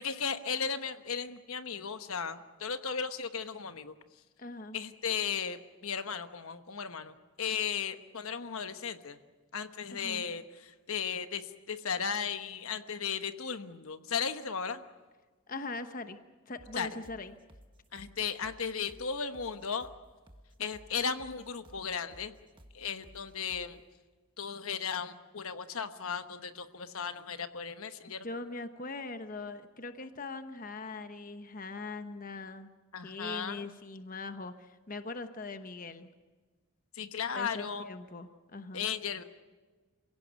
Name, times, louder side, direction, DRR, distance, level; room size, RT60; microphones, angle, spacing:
voice 1, 0.0-3.9 4.7-9.2 9.5-14.8 16.7-17.0 17.9-19.9 20.6-22.3 22.7-23.8 24.4-28.3 32.9-33.7 36.9-37.9 38.7-39.2, left 6 dB, 75° left, 9 dB, 1.1 m, -36 dB
voice 2, 4.4-4.8 9.9-10.2 15.5-16.2 16.5-17.3 28.2-32.7 33.0-36.1 37.3-38.9, left 3 dB, 40° left, 9 dB, 1.0 m, -41 dB
sound 1, 16.6-23.8, equal, 20° right, 1.5 m, -57 dB
27.5 x 17.0 x 8.1 m, 1.3 s
head